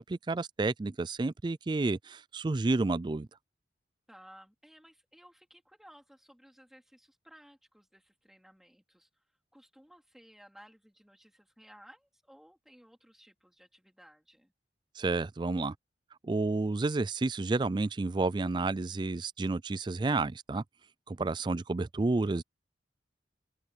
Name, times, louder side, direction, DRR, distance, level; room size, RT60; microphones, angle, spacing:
voice 1, 0.0-3.3 15.0-15.7 16.2-20.6 21.1-22.4, right 3 dB, 25° right, 0.3 m, -30 dB
voice 2, 4.1-9.2 9.5-14.5, equal, ahead, 4.0 m, -58 dB
open air
head